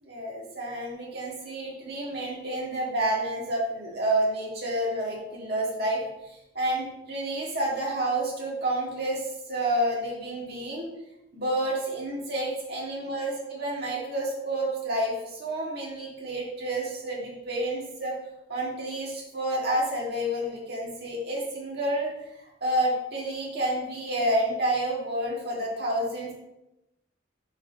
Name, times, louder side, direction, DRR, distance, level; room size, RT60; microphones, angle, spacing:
voice 1, 0.0-6.0 6.3-10.9 11.3-18.2 18.5-22.1 22.6-26.3, right 1 dB, 55° right, -3 dB, 1.9 m, -29 dB
4.7 x 4.4 x 5.0 m, 0.91 s
head